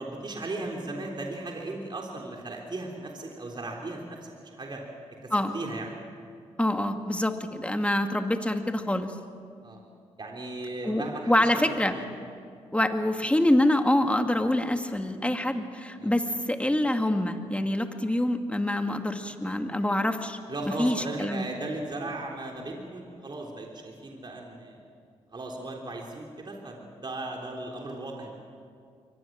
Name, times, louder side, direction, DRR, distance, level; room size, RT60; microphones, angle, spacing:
voice 1, 0.0-4.8 5.2-5.9 9.6-9.8 10.2-12.1 16.0-16.1 20.5-24.8 25.3-28.4, right 2 dB, 40° right, 0 dB, 3.5 m, -37 dB
voice 2, 6.6-9.1 10.8-11.9 12.7-20.4 20.8-21.5, left 1 dB, 10° left, 6 dB, 2.1 m, -26 dB
23.5 x 19.0 x 7.5 m, 2.4 s
supercardioid pair, 50°, 12 cm